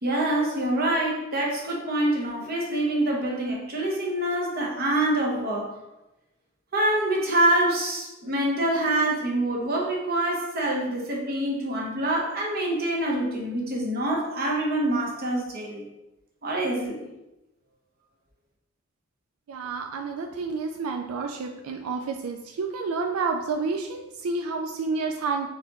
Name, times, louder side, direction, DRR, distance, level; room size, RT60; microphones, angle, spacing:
voice 1, 0.0-5.7 6.7-15.8 16.4-17.1, right 1 dB, 45° right, -1 dB, 0.9 m, -25 dB
voice 2, 19.5-25.5, right 4 dB, 85° right, 4 dB, 0.4 m, -29 dB
4.0 x 4.0 x 3.0 m, 0.97 s
head